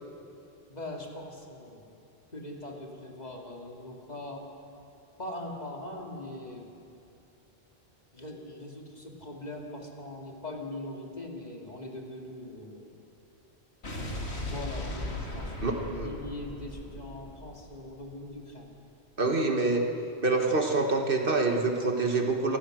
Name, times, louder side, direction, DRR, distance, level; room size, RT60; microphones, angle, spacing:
voice 1, 0.7-1.9 2.3-4.4 5.2-6.7 8.1-12.9 14.4-18.7, left 1 dB, 40° left, 0 dB, 2.7 m, -41 dB
Explosion, 13.8-18.2, left 1 dB, 80° left, 2.6 m, -37 dB
voice 2, 15.6-16.1 19.2-19.8 20.2-22.6, right 3 dB, 55° right, 2 dB, 1.9 m, -26 dB
28.0 x 14.5 x 6.5 m, 2.7 s
omnidirectional pair, 1.1 m